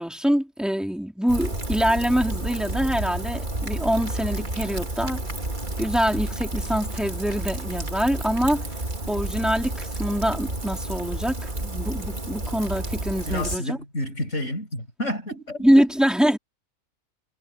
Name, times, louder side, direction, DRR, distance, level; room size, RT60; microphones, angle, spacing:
voice 1, 0.0-5.2 5.8-8.7 9.1-13.8 15.6-16.4, equal, ahead, 3.0 m, -24 dB
Rain, 1.3-13.6, right 1 dB, 35° right, 2.4 m, -30 dB
voice 2, 13.3-15.9, left 1 dB, 55° left, 7.2 m, -30 dB
omnidirectional pair, 1.5 m